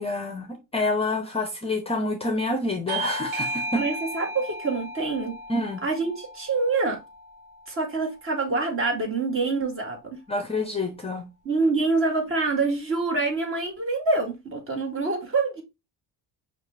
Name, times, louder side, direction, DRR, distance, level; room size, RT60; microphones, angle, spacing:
voice 1, 0.0-3.8 5.5-5.8 10.3-11.3, left 2 dB, 15° left, 0.6 m, -28 dB
Bell / Doorbell, 2.9-8.1, right 1 dB, 70° right, 1.4 m, -35 dB
voice 2, 3.7-5.4 5.8-7.0 7.7-10.2 11.4-15.6, right 3 dB, 35° right, 1.6 m, -26 dB
5.8 x 2.5 x 3.3 m
cardioid pair, 130°, 39 cm